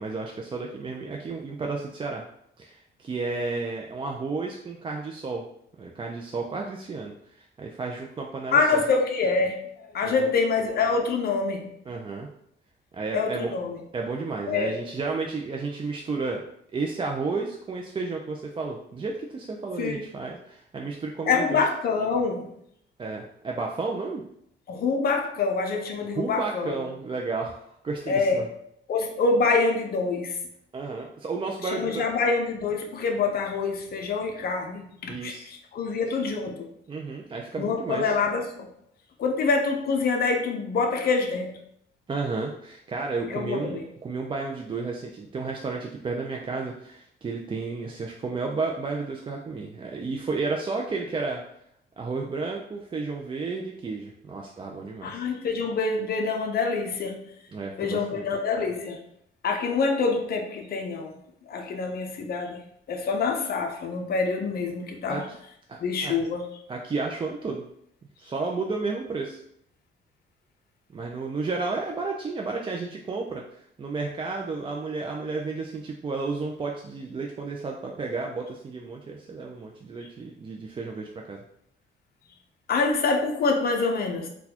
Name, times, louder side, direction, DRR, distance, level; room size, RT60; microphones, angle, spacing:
voice 1, 0.0-2.2 2.6-5.4 5.8-8.8 10.0-10.3 11.9-12.3 12.9-13.5 13.9-16.4 16.7-21.6 23.0-24.2 26.1-28.5 30.7-32.0 35.1-35.5 36.1-36.2 36.9-38.1 42.1-51.4 52.0-55.2 57.5-58.2 65.1-65.4 65.7-66.1 66.7-67.6 68.2-69.4 70.9-73.4 73.8-81.4, right 4 dB, 25° right, 0 dB, 0.4 m, -32 dB
voice 2, 8.5-9.7 9.9-11.7 13.1-13.8 14.5-14.8 19.8-20.0 21.3-22.5 24.7-26.8 28.1-28.5 28.9-30.4 31.6-36.7 37.6-38.7 39.2-41.6 43.3-43.9 55.0-57.2 57.8-59.0 59.4-61.2 61.5-62.6 62.9-65.3 65.8-66.5 82.7-84.3, left 4 dB, 50° left, 2 dB, 0.6 m, -26 dB
4.0 x 2.2 x 2.8 m, 0.72 s
cardioid pair, 90°, 20 cm